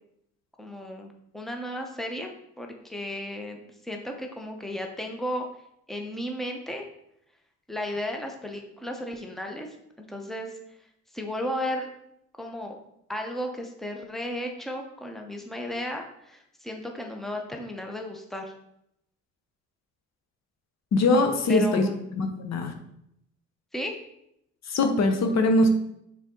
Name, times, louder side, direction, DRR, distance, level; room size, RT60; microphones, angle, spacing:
voice 1, 0.6-5.5 5.9-6.8 7.7-9.7 10.0-10.5 11.1-11.9 12.4-12.8 13.1-18.5 21.5-22.0 23.7-23.9, left 1 dB, ahead, 2 dB, 0.9 m, -34 dB
voice 2, 20.9-22.7 24.7-25.7, left 2 dB, 60° left, 6 dB, 0.9 m, -22 dB
6.4 x 4.1 x 3.8 m, 0.77 s
cardioid pair, 90°, 30 cm